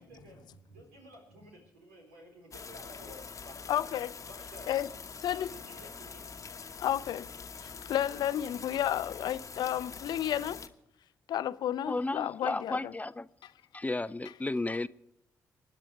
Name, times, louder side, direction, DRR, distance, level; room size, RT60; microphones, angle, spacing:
voice 1, 0.0-3.9 4.3-4.9 5.3-6.6, equal, 85° right, 4.0 m, -52 dB
sound 1, 2.5-10.7, left 5 dB, 40° left, 1.1 m, -45 dB
voice 2, 3.7-4.1 4.7-4.9 5.2-5.5 6.8-7.3 7.6-10.6 11.3-12.9, left 11 dB, 60° left, 0.6 m, -32 dB
voice 3, 11.9-13.3 13.7-14.9, left 2 dB, 20° left, 0.6 m, -33 dB
25.5 x 10.0 x 4.6 m
hypercardioid pair, 40°, 8 cm